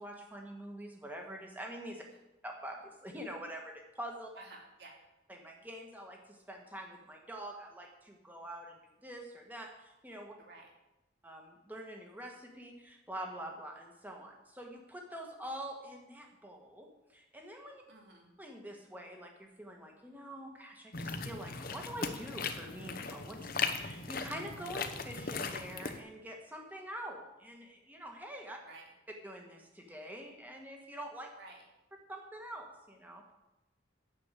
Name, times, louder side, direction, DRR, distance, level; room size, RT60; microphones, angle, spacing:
voice 1, 0.0-2.0 2.4-4.3 5.3-10.3 11.2-17.8 18.4-28.6 29.2-31.3 32.1-33.3, right 1 dB, 10° right, 1 dB, 1.6 m, -46 dB
voice 2, 4.3-5.0 10.4-10.7 17.9-18.3 28.6-28.9 31.3-31.6, right 2 dB, 60° right, 0 dB, 2.7 m, -53 dB
sound 1, 20.9-26.0, left 5 dB, 50° left, 0.9 m, -38 dB
9.6 x 7.1 x 8.3 m, 0.97 s
head